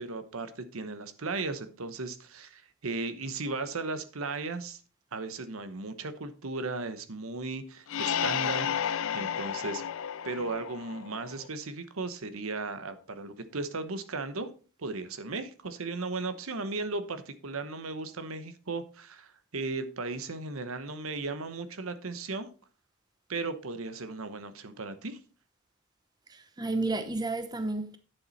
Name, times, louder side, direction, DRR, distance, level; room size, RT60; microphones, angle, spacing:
voice 1, 0.0-4.8 5.1-9.8 10.2-14.5 14.8-22.5 23.3-25.2, right 3 dB, 70° right, 1.0 m, -36 dB
sound 1, 7.9-11.5, left 8 dB, 65° left, 0.4 m, -32 dB
voice 2, 26.3-28.0, right 2 dB, 20° right, 0.8 m, -31 dB
10.0 x 6.9 x 4.1 m
head